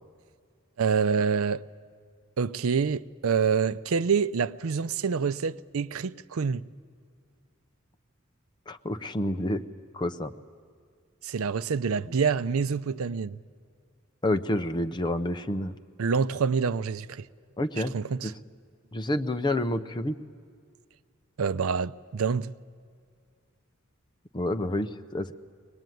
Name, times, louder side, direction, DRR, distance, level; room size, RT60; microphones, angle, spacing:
voice 1, 0.8-1.6 2.4-6.6 11.2-13.4 16.0-17.3 17.9-18.3 21.4-22.5, right 5 dB, 90° right, 0.5 m, -27 dB
voice 2, 8.7-9.6 9.9-10.3 14.2-15.7 17.6-17.9 18.2-18.3 18.9-20.2 24.3-25.3, left 1 dB, 20° left, 0.7 m, -28 dB
23.5 x 19.5 x 9.2 m
head